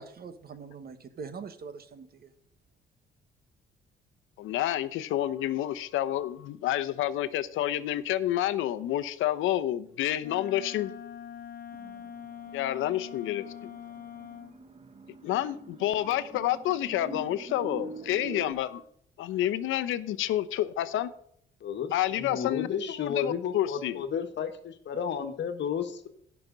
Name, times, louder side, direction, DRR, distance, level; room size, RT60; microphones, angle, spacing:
voice 1, 0.0-2.3, right 5 dB, 50° right, 11 dB, 1.3 m, -43 dB
voice 2, 4.4-10.9 12.5-13.7 15.2-18.8 19.2-21.1 21.9-22.7 23.0-24.0, left 13 dB, 85° left, 14 dB, 0.7 m, -29 dB
Wind instrument woodwind instrument, 10.2-14.6, left 9 dB, 50° left, 1.6 m, -44 dB
sound 1, 11.7-18.5, right 4 dB, 30° right, 1.0 m, -45 dB
voice 3, 21.6-26.1, left 7 dB, 65° left, 7 dB, 1.4 m, -33 dB
17.0 x 6.0 x 3.9 m, 0.67 s
cardioid pair, 90°, 20 cm